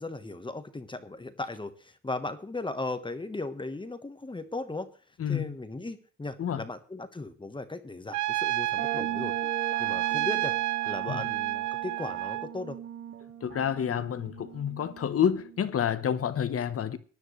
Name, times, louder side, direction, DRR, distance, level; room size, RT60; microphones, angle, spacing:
voice 1, 0.0-4.9 5.3-10.5 10.8-12.8, left 2 dB, 15° left, 1.3 m, -37 dB
voice 2, 5.2-5.5 6.4-6.6 11.1-11.2 13.4-17.0, left 8 dB, 50° left, 1.2 m, -29 dB
Trumpet, 8.1-12.5, right 17 dB, 70° right, 0.6 m, -30 dB
sound 1, 8.8-16.4, right 8 dB, 45° right, 0.8 m, -40 dB
19.0 x 10.5 x 3.3 m
cardioid pair, 90°, 30 cm